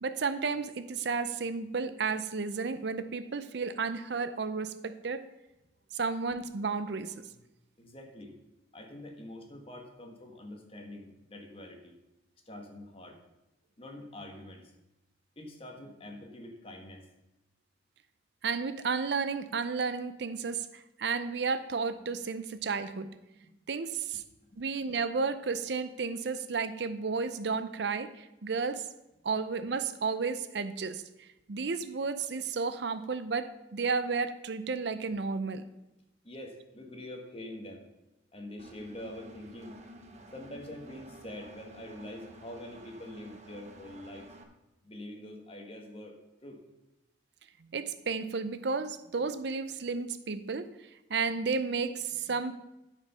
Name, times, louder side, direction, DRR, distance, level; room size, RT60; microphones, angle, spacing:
voice 1, 0.0-5.3 5.9-7.1 18.4-23.1 23.7-24.2 24.6-28.9 29.2-35.6 47.7-50.7 51.1-52.5, right 4 dB, 65° right, 12 dB, 0.6 m, -32 dB
voice 2, 7.8-8.4 8.7-12.0 12.4-13.2 13.8-14.7 15.3-17.1 23.4-23.5 24.5-24.6 36.2-37.8 38.3-39.8 40.3-44.4 44.8-46.6, left 1 dB, 30° left, 3 dB, 1.5 m, -45 dB
Engine, 38.6-44.4, right 1 dB, 35° right, 1.1 m, -51 dB
12.5 x 5.2 x 5.5 m, 0.96 s
head